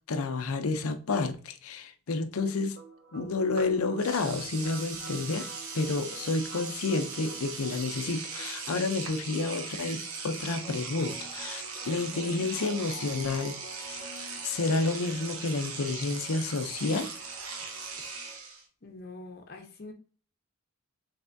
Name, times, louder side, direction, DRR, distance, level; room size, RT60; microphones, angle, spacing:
voice 1, 0.1-2.8 3.1-5.5 5.7-14.1 14.4-17.1, left 3 dB, 80° left, 0.6 m, -30 dB
sound 1, 2.4-18.4, right 2 dB, 50° right, 1.3 m, -49 dB
Engine / Domestic sounds home sounds, 3.6-3.7 4.0-18.6, right 4 dB, 75° right, 1.0 m, -39 dB
voice 2, 18.8-19.9, left 2 dB, 45° left, 0.8 m, -45 dB
5.6 x 3.4 x 2.6 m
head